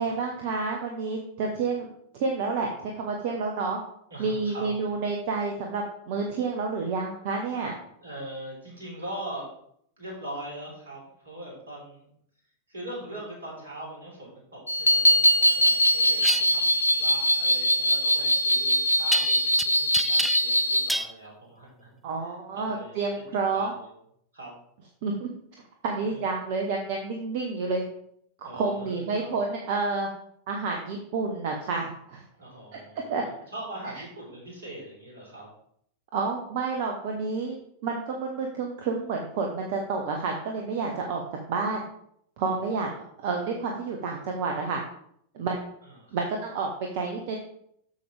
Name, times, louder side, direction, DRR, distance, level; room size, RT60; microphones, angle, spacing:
voice 1, 0.0-1.9 2.2-3.8 4.2-7.8 22.0-23.7 25.0-25.3 25.8-27.9 28.4-30.1 30.5-32.2 32.7-32.8 33.1-33.2 36.1-37.6 37.8-41.2 41.5-41.8 42.4-42.9 43.2-44.8 45.3-45.7 46.1-47.4, right 4 dB, 50° right, 1 dB, 1.1 m, -29 dB
voice 2, 4.1-4.7 8.0-9.5 10.0-12.1 12.7-22.0 22.5-23.2 23.5-23.9 24.3-24.6 26.0-26.2 28.4-29.3 32.4-35.5 42.5-42.7 45.8-46.3, right 1 dB, 70° right, -2 dB, 3.4 m, -41 dB
sound 1, 14.7-20.9, equal, 85° left, 0.4 m, -22 dB
sound 2, 16.2-16.4 19.1-19.6 19.9-20.6 20.9-21.1, equal, ahead, 0.4 m, -28 dB
7.7 x 7.0 x 3.4 m, 0.69 s
figure-of-eight pair, 90°, 0 cm